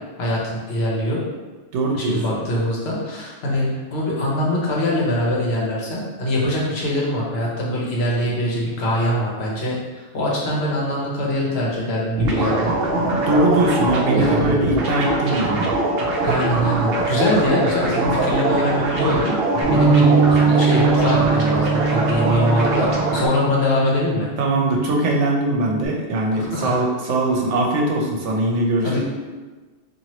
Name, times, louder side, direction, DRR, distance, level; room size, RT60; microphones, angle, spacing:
voice 1, 0.2-1.2 1.9-12.7 14.2-14.4 16.2-19.4 19.6-24.3 26.3-26.8 28.8-29.0, left 1 dB, 65° left, -4 dB, 1.0 m, -23 dB
voice 2, 1.7-2.4 13.1-15.7 24.4-29.0, right 2 dB, 90° right, -1 dB, 0.9 m, -21 dB
sound 1, 12.2-23.3, right 2 dB, 65° right, 0.7 m, -22 dB
Bass guitar, 19.6-25.9, right 4 dB, 5° left, 0.5 m, -21 dB
2.9 x 2.6 x 2.9 m, 1.3 s
omnidirectional pair, 1.2 m